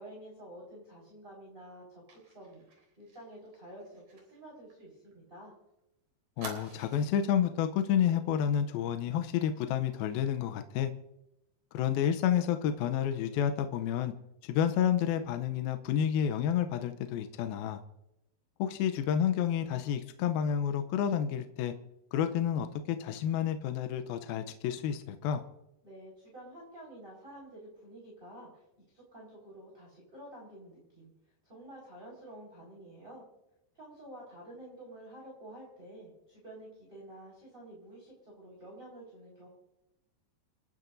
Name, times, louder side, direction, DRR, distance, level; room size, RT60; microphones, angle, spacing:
voice 1, 0.0-2.7 3.0-5.5 25.8-28.7 28.9-31.1 31.4-33.2 33.7-39.5, right 1 dB, 15° right, -4 dB, 4.6 m, -50 dB
Fire, 2.1-5.5 5.8-5.9 6.4-7.4 7.8-8.0 8.3-8.5, right 2 dB, 45° right, 4.6 m, -49 dB
voice 2, 6.4-10.9 11.7-14.1 14.4-17.8 18.6-21.7 22.1-25.4, left 9 dB, 75° left, 8 dB, 2.3 m, -30 dB
29.5 x 10.5 x 2.6 m, 0.90 s
omnidirectional pair, 4.7 m